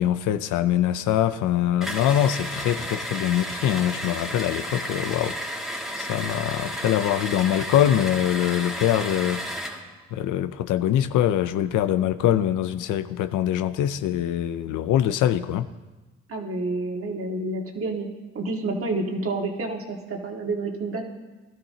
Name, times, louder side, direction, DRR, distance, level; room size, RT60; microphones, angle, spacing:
voice 1, 0.0-5.4 6.0-9.4 10.1-15.7, left 11 dB, 90° left, 12 dB, 0.7 m, -23 dB
sound 1, 1.8-9.8, equal, ahead, 1.9 m, -32 dB
voice 2, 16.3-18.1 18.3-21.1, right 2 dB, 50° right, 1 dB, 2.1 m, -29 dB
19.0 x 12.5 x 2.9 m, 1.2 s
cardioid pair, 90°, 30 cm